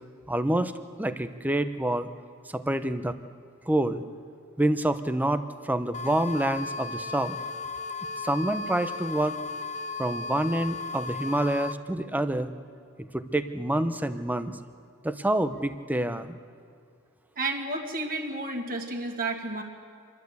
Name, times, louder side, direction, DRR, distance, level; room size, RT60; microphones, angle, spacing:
voice 1, 0.3-0.7 1.0-2.1 2.5-3.1 3.7-4.0 4.6-7.4 8.2-9.3 10.0-12.5 13.1-14.6 15.0-16.4, right 1 dB, 5° right, 10 dB, 0.7 m, -27 dB
sound 1, 5.9-11.7, left 3 dB, 30° left, 0.6 m, -35 dB
voice 2, 17.4-19.6, right 2 dB, 40° right, 2 dB, 2.1 m, -31 dB
27.0 x 12.0 x 8.2 m, 2.2 s
head